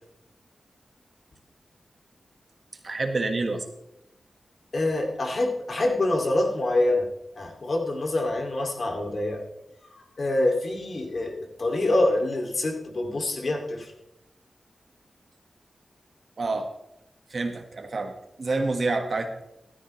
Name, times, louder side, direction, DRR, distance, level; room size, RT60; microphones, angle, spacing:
voice 1, 2.8-3.6 16.4-16.7 17.3-19.4, right 3 dB, 55° right, 5 dB, 1.5 m, -28 dB
voice 2, 4.7-7.1 7.4-9.4 10.2-13.9, left 2 dB, 55° left, 2 dB, 2.4 m, -25 dB
14.5 x 13.0 x 3.2 m, 0.84 s
wide cardioid pair, 105°, 0 cm